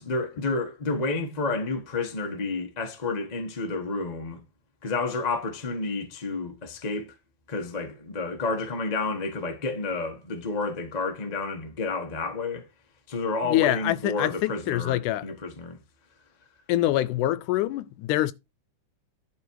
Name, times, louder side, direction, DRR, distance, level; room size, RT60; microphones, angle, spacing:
voice 1, 0.0-4.4 4.8-7.1 7.5-12.7 13.1-15.8, left 3 dB, 35° left, 0.6 m, -30 dB
voice 2, 13.4-15.3 16.7-18.3, left 14 dB, 80° left, 2.1 m, -25 dB
11.0 x 4.5 x 4.7 m
omnidirectional pair, 3.6 m